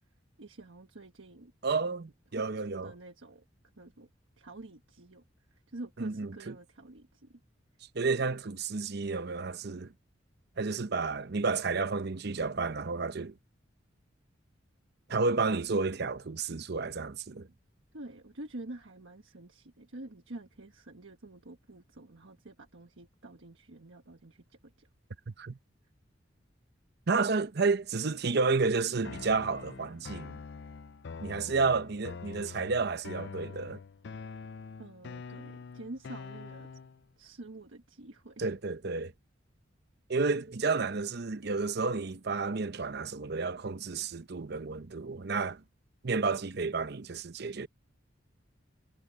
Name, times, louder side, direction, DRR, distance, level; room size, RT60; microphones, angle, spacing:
voice 1, 0.4-1.5 2.4-3.4 3.8-4.1 4.4-5.2 5.5-7.4 17.9-24.9 34.8-36.7 37.2-38.4, right 2 dB, 80° right, 1.4 m, -47 dB
voice 2, 1.6-2.9 6.0-6.5 7.9-9.9 10.6-13.3 15.1-17.5 25.3-25.6 27.1-30.4 31.2-33.8 38.4-39.1 40.1-45.6 46.0-47.7, right 4 dB, 55° right, 0.8 m, -31 dB
sound 1, 29.0-37.0, left 5 dB, 60° left, 0.5 m, -45 dB
head